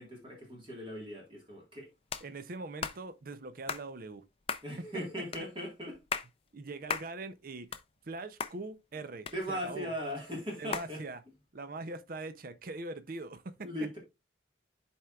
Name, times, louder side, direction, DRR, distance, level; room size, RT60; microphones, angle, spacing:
voice 1, 0.0-1.9 4.6-6.0 9.3-11.0 13.6-14.0, equal, 25° right, 1.6 m, -39 dB
sound 1, 2.1-2.3 2.8-3.0 3.7-3.9 4.5-4.7 5.3-5.4 5.9-6.3 6.9-7.1 7.5-8.1 8.4-8.5 9.3-9.8 10.7-10.9, left 6 dB, 30° left, 0.4 m, -36 dB
voice 2, 2.2-4.2 6.5-7.7 8.1-9.9 10.6-11.2 11.5-13.7, right 2 dB, 50° right, 0.5 m, -42 dB
11.0 x 4.4 x 2.3 m
head